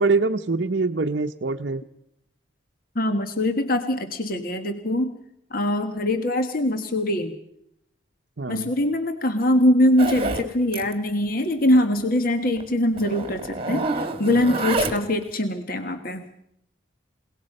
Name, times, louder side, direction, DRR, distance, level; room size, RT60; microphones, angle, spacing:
voice 1, 0.0-1.8 8.4-8.7, right 3 dB, 60° right, 3 dB, 0.7 m, -24 dB
voice 2, 2.9-5.1 5.5-7.3 8.5-16.2, left 1 dB, 45° left, 7 dB, 1.4 m, -23 dB
Zipper (clothing), 10.0-10.5 10.7-10.9 11.2-11.3 11.7-11.8 12.6-12.7 13.0-15.2, right 2 dB, 30° right, 1.8 m, -27 dB
29.0 x 18.5 x 5.4 m, 0.76 s
head